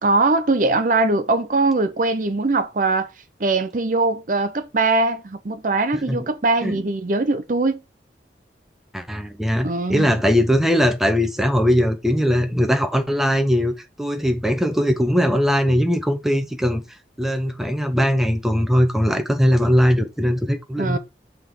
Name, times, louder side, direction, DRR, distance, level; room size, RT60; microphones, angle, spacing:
voice 1, 0.0-3.1 3.4-7.8 9.6-10.2 20.8-21.0, right 3 dB, 45° right, 0.6 m, -21 dB
voice 2, 8.9-16.8 17.2-21.0, equal, ahead, 0.7 m, -20 dB
5.9 x 3.5 x 4.5 m
head